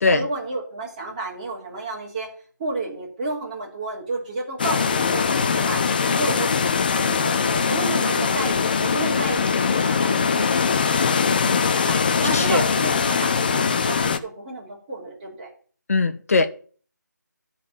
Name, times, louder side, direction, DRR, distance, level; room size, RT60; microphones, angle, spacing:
voice 1, 0.1-2.3 2.6-6.6 7.0-15.5, right 2 dB, 25° right, 3.4 m, -32 dB
sound 1, 4.6-14.2, left 5 dB, 30° left, 0.5 m, -21 dB
voice 2, 12.3-12.6 15.9-16.5, left 3 dB, 50° left, 1.0 m, -20 dB
13.0 x 4.4 x 7.5 m
figure-of-eight pair, 160°, 10 cm